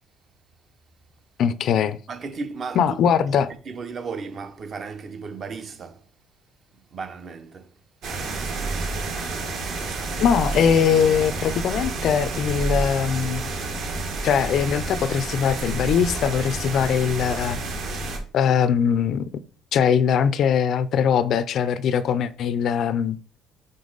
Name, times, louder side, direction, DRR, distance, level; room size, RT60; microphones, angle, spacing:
voice 1, 1.4-2.0 2.8-3.5 10.2-13.4 14.2-17.6 18.3-19.4 19.7-23.2, left 7 dB, 50° left, 0.4 m, -21 dB
voice 2, 2.1-3.0 3.7-6.0 6.7-7.7, right 4 dB, 35° right, 0.7 m, -35 dB
sound 1, 8.0-18.2, right 3 dB, 60° right, 1.6 m, -29 dB
5.4 x 5.3 x 3.9 m
cardioid pair, 150°, 0 cm